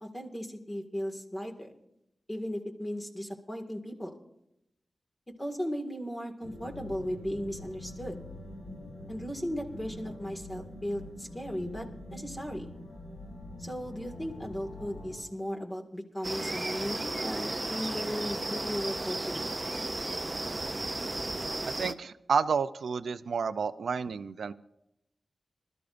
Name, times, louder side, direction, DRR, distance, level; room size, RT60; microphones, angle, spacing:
voice 1, 0.0-1.7 2.3-4.2 5.4-8.2 9.1-12.7 13.6-19.5, equal, 15° left, 2 dB, 1.9 m, -36 dB
sound 1, 6.4-15.2, left 1 dB, 85° left, 6.2 m, -45 dB
sound 2, 16.2-21.9, right 2 dB, 25° right, 0.5 m, -34 dB
voice 2, 21.7-24.5, right 5 dB, 90° right, 13 dB, 0.4 m, -30 dB
25.5 x 13.5 x 2.6 m, 0.83 s
wide cardioid pair, 95°, 0 cm